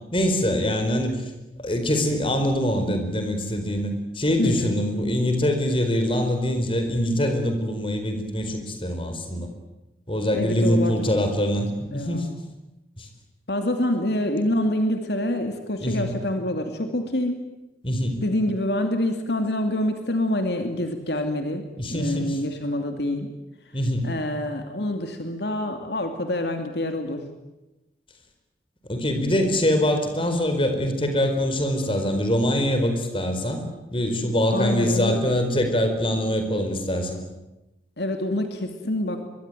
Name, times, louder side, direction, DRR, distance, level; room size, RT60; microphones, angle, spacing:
voice 1, 0.1-1.2 1.6-9.5 10.1-12.3 13.0-13.1 15.8-16.2 17.8-18.2 21.8-22.4 23.7-24.1 28.9-33.6 33.9-37.2, equal, 30° left, 6 dB, 4.6 m, -24 dB
voice 2, 4.4-4.8 10.3-11.0 11.9-12.3 13.5-17.4 18.2-23.3 24.0-27.2 34.5-35.3 38.0-39.3, left 1 dB, 70° left, 5 dB, 2.7 m, -26 dB
25.0 x 22.5 x 9.3 m, 0.99 s
head